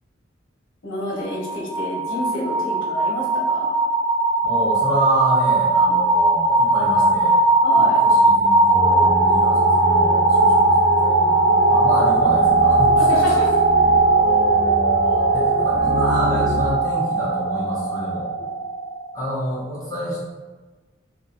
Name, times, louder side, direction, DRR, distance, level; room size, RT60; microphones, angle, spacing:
voice 1, 0.8-3.7 5.9-6.0 7.6-8.0 11.4-11.7 13.0-13.5 18.4-18.5, left 1 dB, 80° left, -5 dB, 0.8 m, -28 dB
sound 1, 1.3-19.2, right 2 dB, 20° right, 0.3 m, -18 dB
voice 2, 4.4-7.4 7.8-11.4 11.7-13.1 13.8-18.3 19.1-20.2, right 1 dB, 20° left, -8 dB, 0.9 m, -28 dB
sound 2, 8.7-16.7, left 1 dB, 40° right, 0.7 m, -28 dB
2.6 x 2.3 x 2.6 m, 1.3 s
head